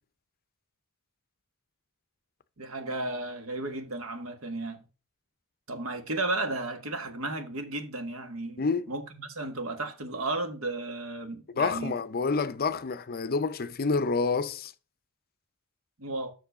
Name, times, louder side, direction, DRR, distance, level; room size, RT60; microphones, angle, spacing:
voice 1, 2.6-4.8 5.7-12.0 16.0-16.3, right 2 dB, 70° right, 1.5 m, -34 dB
voice 2, 11.6-14.7, left 4 dB, 45° left, 0.5 m, -28 dB
7.2 x 6.2 x 5.0 m
head